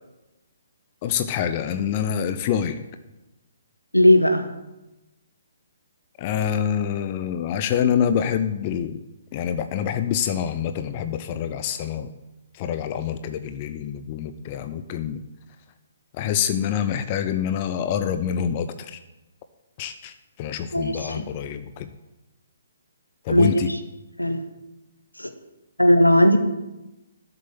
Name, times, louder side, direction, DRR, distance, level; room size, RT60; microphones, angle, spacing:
voice 1, 1.0-2.8 6.2-9.0 9.3-12.1 12.5-15.2 16.1-19.0 19.8-20.1 20.4-21.9 23.2-23.7, left 8 dB, 30° left, 10 dB, 0.8 m, -26 dB
voice 2, 3.9-4.4 20.7-21.2 23.3-23.8 24.2-24.4 25.2-25.3 25.8-26.4, left 1 dB, 85° left, 8 dB, 1.5 m, -17 dB
12.5 x 7.9 x 7.6 m, 1.0 s
figure-of-eight pair, 130°, 0 cm